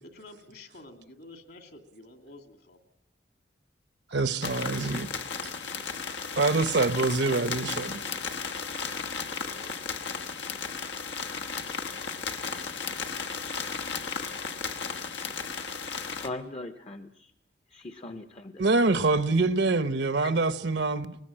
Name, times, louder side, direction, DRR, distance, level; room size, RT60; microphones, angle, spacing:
voice 1, 0.0-2.8 9.4-10.0, left 2 dB, 60° left, 2.5 m, -50 dB
voice 2, 4.1-5.1 6.4-8.0 18.6-21.2, right 3 dB, 70° right, 1.0 m, -25 dB
sound 1, 4.4-16.3, left 5 dB, 85° left, 1.3 m, -35 dB
voice 3, 16.2-17.3 17.7-18.6 20.2-20.3, left 2 dB, 30° left, 0.7 m, -39 dB
21.0 x 20.0 x 8.8 m
head